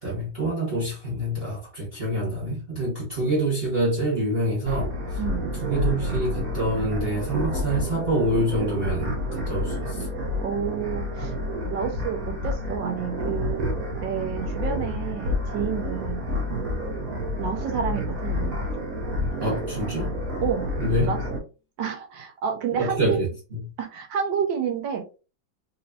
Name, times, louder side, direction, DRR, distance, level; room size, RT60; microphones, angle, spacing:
voice 1, 0.0-5.2 5.5-10.1 19.4-20.1 20.8-21.1 22.7-23.3, right 1 dB, 30° right, 1.5 m, -26 dB
sound 1, 3.9-21.4, left 10 dB, 45° left, 1.3 m, -49 dB
sound 2, 4.7-21.4, left 1 dB, 55° right, 1.2 m, -29 dB
voice 2, 10.4-11.3 11.7-13.7 14.0-16.2 17.4-18.5 20.4-20.7 21.1-21.2 21.8-23.2 23.8-25.1, right 7 dB, 75° right, 1.4 m, -29 dB
4.1 x 2.9 x 2.7 m
omnidirectional pair, 2.2 m